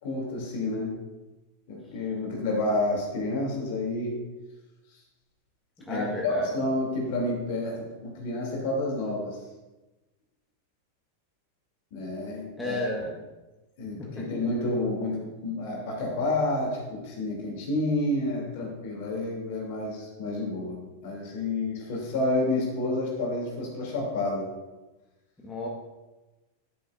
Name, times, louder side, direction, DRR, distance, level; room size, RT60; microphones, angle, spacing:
voice 1, 0.0-1.0 1.7-4.2 5.8-9.4 11.9-12.7 13.8-24.5, left 2 dB, 50° left, -1 dB, 2.9 m, -29 dB
voice 2, 5.9-6.5 12.6-13.1 14.0-14.2 25.4-25.7, left 1 dB, 10° left, -4 dB, 1.5 m, -32 dB
10.5 x 7.9 x 2.6 m, 1.1 s
figure-of-eight pair, 90°, 0 cm